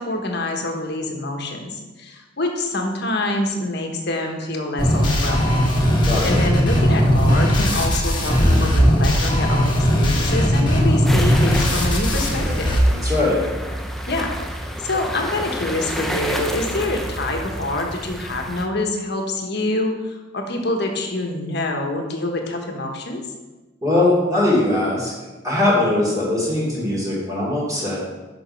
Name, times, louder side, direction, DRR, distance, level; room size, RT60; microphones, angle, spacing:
voice 1, 0.0-5.8 6.2-12.8 14.1-14.3 14.8-23.2, left 2 dB, 60° left, 3 dB, 1.3 m, -26 dB
sound 1, 4.8-12.8, equal, 25° left, 1.6 m, -18 dB
voice 2, 6.1-6.4 12.9-13.5 23.8-25.1 25.4-28.0, left 2 dB, 20° right, -7 dB, 2.5 m, -20 dB
sound 2, 11.1-18.7, equal, ahead, 0.6 m, -29 dB
7.6 x 6.0 x 5.3 m, 1.2 s
head